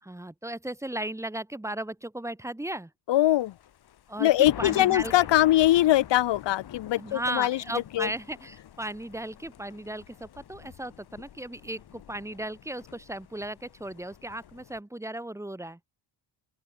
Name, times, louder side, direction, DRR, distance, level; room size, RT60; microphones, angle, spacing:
voice 1, 0.0-2.9 4.1-5.1 7.0-15.8, right 1 dB, 5° right, 5.2 m, -36 dB
voice 2, 3.1-3.5 4.2-7.6 7.9-8.1, left 14 dB, 85° left, 1.9 m, -22 dB
Thunder, 3.3-14.8, left 10 dB, 65° left, 5.9 m, -45 dB
open air
cardioid pair, 145°, 42 cm